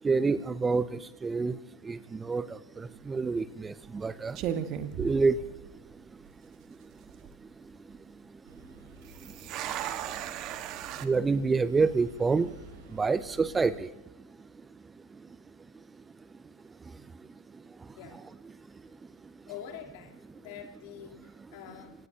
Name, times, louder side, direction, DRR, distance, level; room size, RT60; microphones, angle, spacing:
voice 1, 0.0-15.4 15.7-18.0 18.5-19.5 21.5-21.6, right 4 dB, 15° right, 17 dB, 0.5 m, -32 dB
sound 1, 2.8-3.1 3.8-4.0 4.3-5.9 6.2-6.3 6.9-7.3 9.0-11.1, right 10 dB, 40° right, 1.4 m, -36 dB
sound 2, 8.5-13.7, right 3 dB, 60° right, 5.5 m, -52 dB
voice 2, 19.5-21.9, left 9 dB, 50° left, 2 dB, 3.3 m, -45 dB
25.5 x 19.5 x 2.8 m, 1.0 s
figure-of-eight pair, 100°, 0 cm